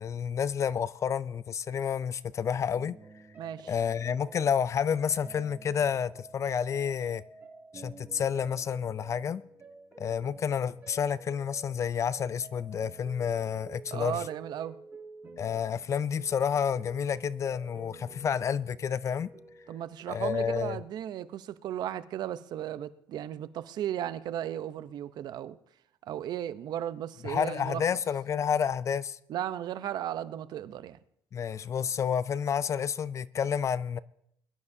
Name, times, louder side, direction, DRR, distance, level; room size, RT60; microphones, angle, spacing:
voice 1, 0.0-3.0 3.7-7.2 7.7-9.4 10.0-14.2 15.4-19.3 20.1-20.8 27.2-29.2 31.3-34.0, left 7 dB, 40° left, 0.4 m, -30 dB
sound 1, 2.7-20.2, right 3 dB, 25° right, 5.8 m, -50 dB
voice 2, 3.4-3.7 13.9-14.8 19.7-25.6 26.0-27.8 29.3-31.0, right 11 dB, 60° right, 0.7 m, -35 dB
21.5 x 12.0 x 2.7 m
cardioid pair, 110°, 8 cm